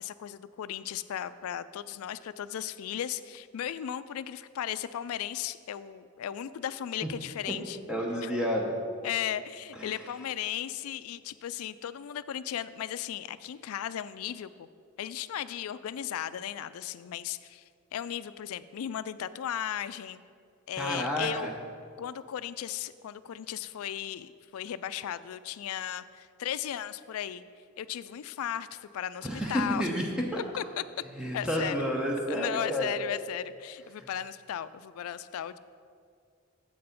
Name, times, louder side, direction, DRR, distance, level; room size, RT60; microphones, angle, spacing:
voice 1, 0.0-7.8 8.2-8.3 9.0-14.7 15.0-17.6 17.9-20.2 20.7-21.5 22.0-27.4 27.8-29.9 30.6-30.8 31.3-31.8 32.3-35.6, left 10 dB, 80° left, 15 dB, 0.3 m, -36 dB
voice 2, 7.9-8.7 9.7-9.9 20.8-21.5 29.2-30.0 30.3-30.4 31.1-32.9, equal, 5° right, -2 dB, 0.7 m, -30 dB
7.8 x 6.8 x 5.1 m, 2.2 s
head